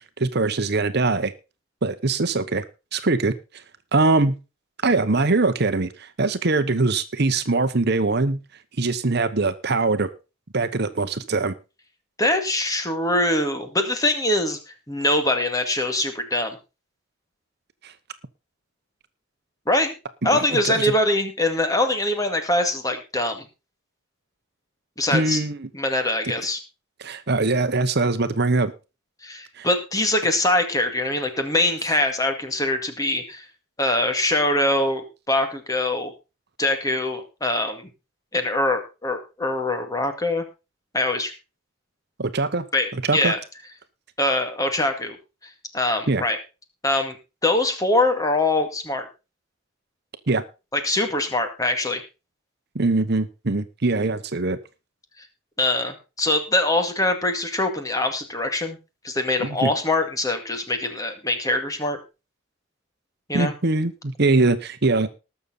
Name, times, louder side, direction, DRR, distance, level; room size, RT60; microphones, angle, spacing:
voice 1, 0.2-1.3 1.8-2.6 2.9-3.6 3.9-4.4 4.8-8.4 8.8-10.1 10.5-11.5 17.8-17.9 20.3-20.9 25.1-25.7 27.0-28.7 29.6-29.7 42.2-42.7 42.9-43.3 46.1-46.2 50.3-50.4 52.7-54.6 59.4-59.7 63.3-65.1, right 3 dB, 55° right, 11 dB, 1.0 m, -22 dB
voice 2, 12.2-14.6 14.9-16.6 19.7-19.9 20.2-23.4 25.0-25.4 25.7-26.6 29.2-33.5 33.8-36.1 36.6-37.9 38.3-40.4 40.9-41.3 42.7-43.4 44.2-45.2 45.7-46.4 46.8-47.2 47.4-49.1 50.7-52.0 55.6-58.8 59.0-62.0 63.3-63.5, left 1 dB, 15° left, 6 dB, 2.1 m, -23 dB
19.5 x 6.9 x 4.0 m, 0.29 s
head